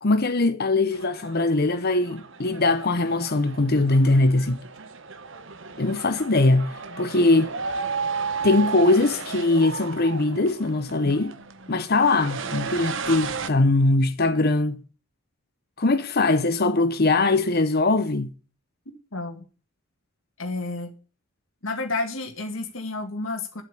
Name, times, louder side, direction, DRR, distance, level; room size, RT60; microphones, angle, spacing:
voice 1, 0.0-4.6 5.8-7.5 8.4-11.3 11.7-14.8 15.8-18.3, left 2 dB, 45° left, 0.8 m, -21 dB
sound 1, 0.9-13.5, right 5 dB, 60° right, 1.1 m, -34 dB
voice 2, 19.1-19.4 20.4-20.9 21.6-23.6, left 3 dB, 65° left, 2.2 m, -30 dB
11.5 x 8.2 x 6.7 m
head